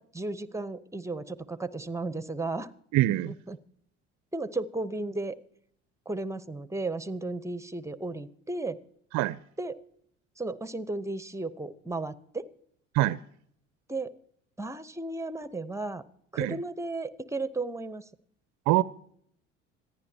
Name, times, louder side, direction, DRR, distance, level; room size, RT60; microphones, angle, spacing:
voice 1, 0.0-2.7 3.3-3.6 4.3-5.4 6.1-8.8 9.6-9.8 10.4-12.5 13.9-14.1 14.6-16.0 16.3-18.0, right 2 dB, 10° right, 16 dB, 0.9 m, -34 dB
voice 2, 2.9-3.3 9.1-9.4 12.9-13.2 16.4-16.6 18.7-18.8, right 17 dB, 50° right, 17 dB, 0.6 m, -24 dB
26.0 x 10.5 x 2.9 m, 0.67 s
hypercardioid pair, 60°, 36 cm